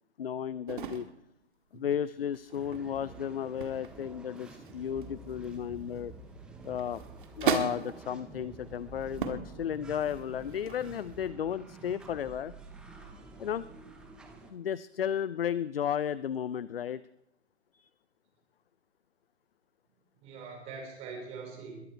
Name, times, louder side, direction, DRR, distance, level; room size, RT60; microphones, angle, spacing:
voice 1, 0.2-1.1 1.7-6.1 6.6-7.0 7.4-12.5 13.4-13.7 14.5-17.0 17.7-17.9, left 9 dB, 55° left, 18 dB, 0.5 m, -34 dB
sound 1, 0.7-1.2 2.2-3.2 3.6-4.0 4.3-6.0 6.6-8.1 8.7-8.8 9.1-9.5 9.9-11.3, right 7 dB, 45° right, 1.9 m, -36 dB
sound 2, 2.5-14.5, right 3 dB, 5° right, 0.7 m, -49 dB
voice 2, 20.2-21.9, right 4 dB, 20° right, 2 dB, 4.1 m, -43 dB
21.5 x 10.0 x 4.6 m, 0.82 s
figure-of-eight pair, 135°, 35 cm